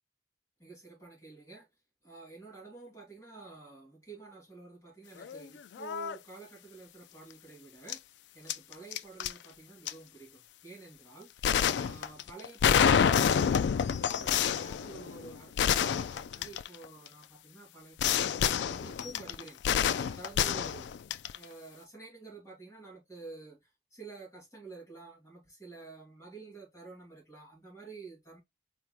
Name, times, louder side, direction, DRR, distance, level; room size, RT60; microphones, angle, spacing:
voice 1, 0.6-1.7 2.0-8.0 8.3-13.7 14.0-20.9 21.3-28.4, right 4 dB, 20° left, 2.5 m, -50 dB
sound 1, 5.2-5.4 5.7-6.2 7.9-8.0 8.5-9.3 9.9-10.0 11.4-17.1 18.0-21.4, left 8 dB, 85° left, 0.3 m, -28 dB
4.5 x 3.5 x 2.9 m
head